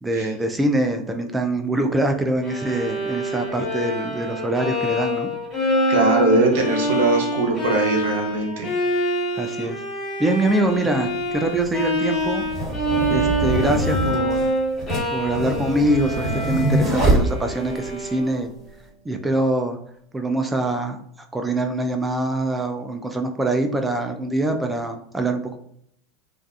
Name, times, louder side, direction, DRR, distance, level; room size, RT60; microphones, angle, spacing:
voice 1, 0.0-5.3 9.3-9.8 10.2-12.5 13.1-14.5 15.1-18.5 19.1-19.8 20.1-21.0 21.3-25.6, right 1 dB, 10° right, 5 dB, 0.3 m, -24 dB
Bowed string instrument, 2.4-18.5, equal, 25° left, 1.0 m, -26 dB
voice 2, 5.9-8.7, right 2 dB, 75° right, 0 dB, 0.8 m, -21 dB
sound 1, 10.5-10.6 11.5-17.9, right 1 dB, 25° right, 1.4 m, -24 dB
2.4 x 2.3 x 2.3 m, 0.68 s
hypercardioid pair, 110°, 0 cm